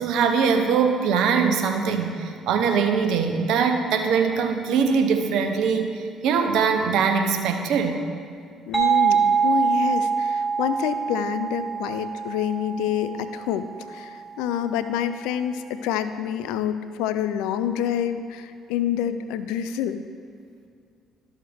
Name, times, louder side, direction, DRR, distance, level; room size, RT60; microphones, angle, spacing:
voice 1, 0.0-8.0, right 6 dB, 70° right, 6 dB, 0.8 m, -22 dB
voice 2, 8.7-20.0, left 9 dB, 80° left, 11 dB, 0.4 m, -27 dB
sound 1, 8.7-14.2, right 6 dB, 5° right, 1.5 m, -24 dB
12.5 x 6.4 x 3.5 m, 2.3 s
hypercardioid pair, 60°, 0 cm